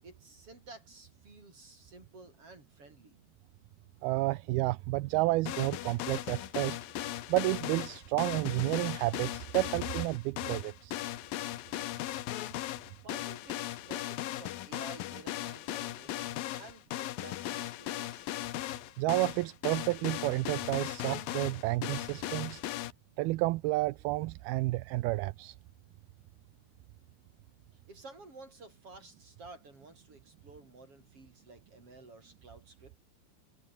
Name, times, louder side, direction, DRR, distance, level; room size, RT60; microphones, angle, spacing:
voice 1, 0.0-3.2 13.0-18.4 27.9-33.0, right 3 dB, 35° right, 8.9 m, -52 dB
voice 2, 4.0-6.8 7.3-11.0 19.0-22.6 23.2-25.6, right 20 dB, 80° right, 2.6 m, -31 dB
sound 1, 5.5-22.9, left 14 dB, 70° left, 2.7 m, -38 dB
omnidirectional pair, 4.5 m